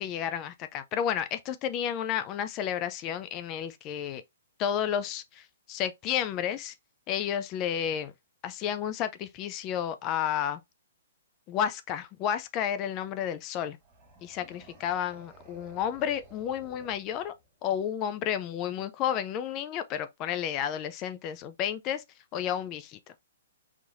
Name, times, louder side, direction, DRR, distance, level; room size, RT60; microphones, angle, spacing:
voice 1, 0.0-4.2 4.6-6.7 7.1-8.1 8.4-10.6 11.5-13.8 14.2-17.3 17.6-22.0 22.3-23.0, left 9 dB, 30° left, 0.4 m, -31 dB
sound 1, 13.8-17.7, right 2 dB, 15° right, 1.7 m, -55 dB
3.9 x 2.9 x 2.6 m
hypercardioid pair, 150°, 0 cm